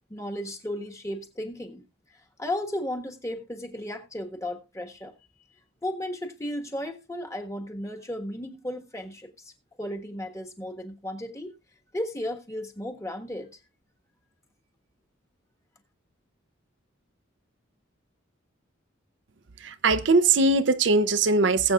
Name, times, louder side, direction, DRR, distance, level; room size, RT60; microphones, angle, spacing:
voice 1, 0.1-1.8 2.4-5.1 5.8-9.5 9.8-11.5 11.9-13.5, left 1 dB, 15° left, 1.4 m, -34 dB
voice 2, 19.6-21.7, right 3 dB, 65° right, 0.6 m, -21 dB
21.0 x 7.9 x 2.4 m
head